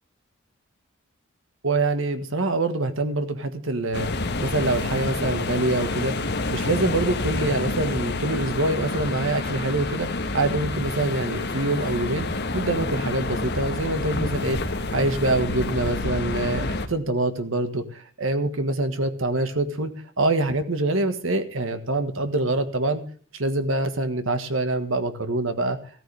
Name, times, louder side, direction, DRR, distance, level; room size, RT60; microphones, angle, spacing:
voice 1, 1.6-4.1 4.4-12.3 12.5-23.0 23.3-25.8, right 2 dB, 70° right, 9 dB, 1.6 m, -25 dB
sound 1, 3.9-16.9, left 2 dB, 55° left, 1.4 m, -28 dB
15.5 x 14.0 x 3.5 m, 0.44 s
head